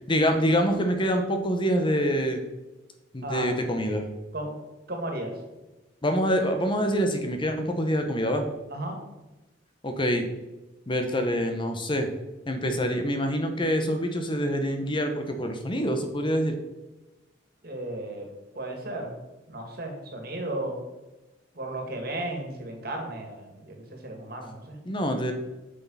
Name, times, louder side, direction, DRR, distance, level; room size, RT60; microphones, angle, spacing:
voice 1, 0.1-2.4 3.1-4.1 6.0-8.5 9.8-10.3 10.9-12.1 12.5-16.6 24.8-25.3, equal, 30° left, 5 dB, 0.9 m, -26 dB
voice 2, 3.2-3.5 4.3-4.5 4.9-5.4 8.7-9.0 17.6-18.3 18.5-19.2 19.5-20.8 21.5-24.8, right 1 dB, 60° right, 2 dB, 2.2 m, -34 dB
7.6 x 6.2 x 5.6 m, 1.1 s
head